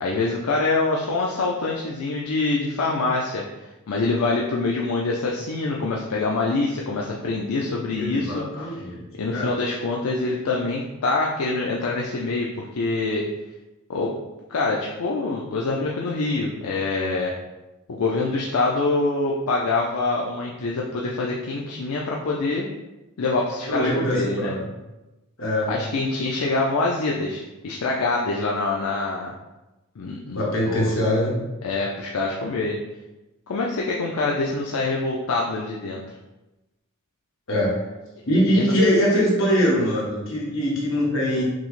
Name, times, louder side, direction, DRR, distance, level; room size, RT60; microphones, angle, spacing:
voice 1, 0.0-3.4 3.9-8.8 9.2-13.2 13.9-14.1 14.5-17.3 17.9-22.7 23.2-24.5 25.7-29.3 30.0-30.9 31.6-32.8 33.5-36.0 38.5-38.7, left 3 dB, 80° left, -2 dB, 0.5 m, -25 dB
voice 2, 7.9-9.0 9.3-9.5 23.7-24.7 25.4-25.7 30.3-31.3 37.5-37.9 38.3-41.4, equal, 65° left, -4 dB, 1.2 m, -22 dB
6.0 x 2.1 x 3.1 m, 1.0 s
head